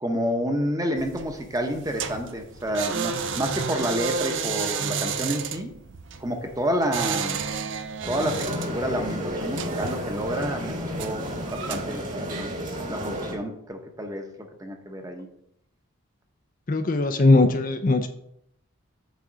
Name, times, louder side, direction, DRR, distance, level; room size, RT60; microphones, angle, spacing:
voice 1, 0.0-5.7 6.2-7.4 8.0-11.2 11.5-12.5 12.9-15.3, equal, 15° right, 4 dB, 0.9 m, -29 dB
sound 1, 1.0-11.8, right 6 dB, 55° right, 0.5 m, -32 dB
sound 2, 8.0-13.3, equal, 35° right, 1.6 m, -32 dB
voice 2, 16.7-18.1, left 2 dB, 40° left, 7 dB, 0.5 m, -19 dB
8.3 x 3.8 x 6.2 m, 0.74 s
head